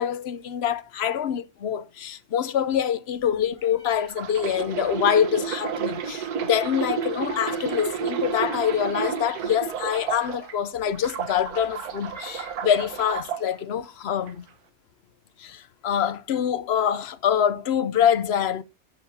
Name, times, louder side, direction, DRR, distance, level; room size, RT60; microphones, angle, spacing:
voice 1, 0.0-14.5 15.4-18.6, left 9 dB, 55° left, 0.7 m, -25 dB
Meow, 3.1-13.2, equal, 80° left, 5.3 m, -54 dB
sound 1, 4.0-10.5 10.9-13.4 14.1-14.3, right 7 dB, 90° right, 1.6 m, -31 dB
12.0 x 8.3 x 2.7 m
omnidirectional pair, 1.6 m